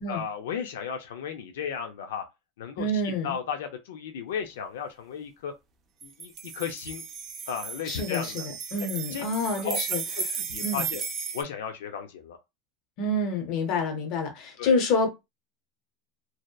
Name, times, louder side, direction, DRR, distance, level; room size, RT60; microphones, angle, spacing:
voice 1, 0.1-2.2 2.6-5.5 6.0-7.0 7.5-8.5 8.8-9.2 9.6-9.8 10.2-11.0 11.3-12.4 14.6-14.8, left 7 dB, 90° left, 0.4 m, -35 dB
voice 2, 2.8-3.4 7.8-10.0 10.6-10.9 13.0-15.1, left 2 dB, 35° left, 0.6 m, -28 dB
sound 1, 6.0-11.4, right 6 dB, 20° right, 0.3 m, -34 dB
2.7 x 2.1 x 2.2 m
supercardioid pair, 180°, 0 cm